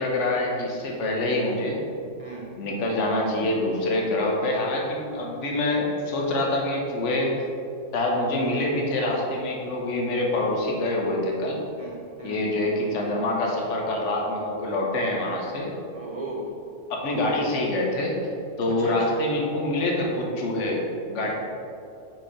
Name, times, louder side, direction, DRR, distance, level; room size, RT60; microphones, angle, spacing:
voice 1, 0.0-1.8 2.6-7.3 7.9-11.6 12.2-15.7 16.9-18.1 18.6-20.8 21.1-21.3, left 1 dB, 65° left, -1 dB, 1.3 m, -25 dB
voice 2, 2.2-2.5 11.8-12.4 15.9-16.5 18.7-18.9 21.2-21.3, right 2 dB, 55° right, -1 dB, 0.4 m, -37 dB
6.1 x 4.3 x 4.9 m, 2.5 s
omnidirectional pair, 1.4 m